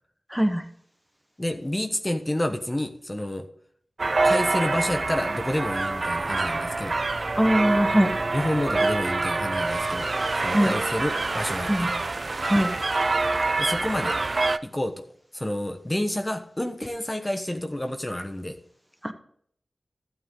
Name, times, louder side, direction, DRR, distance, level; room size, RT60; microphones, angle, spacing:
voice 1, 0.3-0.6 7.4-8.1 10.5-10.7 11.7-11.9 12.5-12.7 19.0-19.1, equal, 5° right, 7 dB, 1.2 m, -21 dB
voice 2, 1.4-3.5 4.2-7.0 8.3-10.1 10.4-11.9 13.6-14.2 14.6-15.0 15.3-18.6, left 1 dB, 20° left, 6 dB, 1.1 m, -29 dB
sound 1, 4.0-14.6, right 3 dB, 50° right, 0.5 m, -26 dB
12.5 x 8.1 x 3.7 m, 0.63 s
cardioid pair, 45°, 0 cm